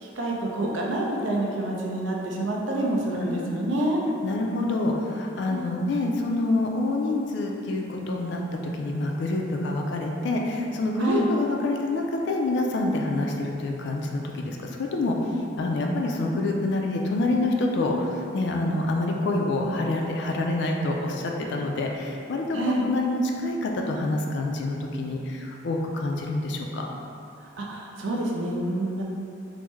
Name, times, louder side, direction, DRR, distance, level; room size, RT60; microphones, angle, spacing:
voice 1, 0.0-4.0 5.5-5.8 11.0-11.3 22.5-22.9 27.4-29.0, right 1 dB, 65° right, -2 dB, 0.5 m, -27 dB
voice 2, 3.2-3.7 4.2-8.4 8.8-15.2 15.6-26.8, left 2 dB, 60° left, 1 dB, 0.3 m, -27 dB
3.5 x 2.0 x 3.1 m, 2.7 s
head